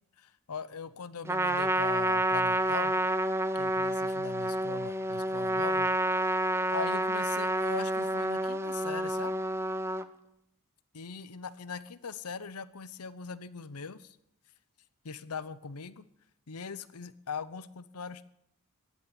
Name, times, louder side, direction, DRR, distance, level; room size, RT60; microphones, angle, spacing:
voice 1, 0.2-2.9 3.5-5.9 6.7-9.3 10.9-14.2 15.0-16.0 16.5-18.2, left 5 dB, 85° left, 15 dB, 0.8 m, -40 dB
Trumpet, 1.3-10.1, right 1 dB, 10° right, 0.7 m, -29 dB
15.5 x 9.5 x 8.8 m, 0.77 s
head